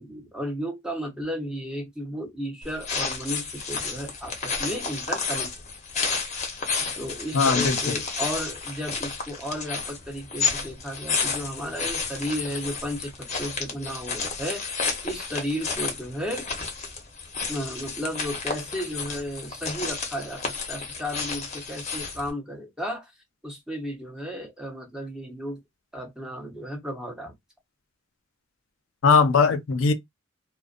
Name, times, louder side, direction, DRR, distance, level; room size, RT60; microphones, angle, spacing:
voice 1, 0.0-5.5 7.0-14.6 15.0-16.5 17.5-23.1 23.4-25.6 25.9-27.3, equal, 5° right, 0.7 m, -33 dB
sound 1, 2.6-22.3, left 4 dB, 35° left, 0.7 m, -31 dB
voice 2, 7.3-8.0 29.0-29.9, left 5 dB, 80° left, 0.4 m, -20 dB
2.5 x 2.1 x 2.4 m
head